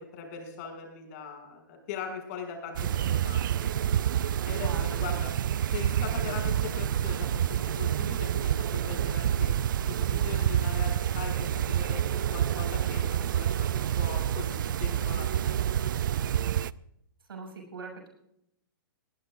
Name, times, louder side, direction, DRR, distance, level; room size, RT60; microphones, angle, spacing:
voice 1, 0.0-3.7 4.4-5.3 5.7-9.5 9.9-15.7, left 6 dB, 40° left, 3 dB, 6.5 m, -40 dB
sound 1, 2.7-16.7, right 10 dB, 60° right, 0.5 m, -28 dB
voice 2, 4.6-5.2 17.3-18.1, right 4 dB, 80° right, 3 dB, 7.1 m, -41 dB
20.5 x 19.0 x 2.6 m, 0.77 s
hypercardioid pair, 135°, 12 cm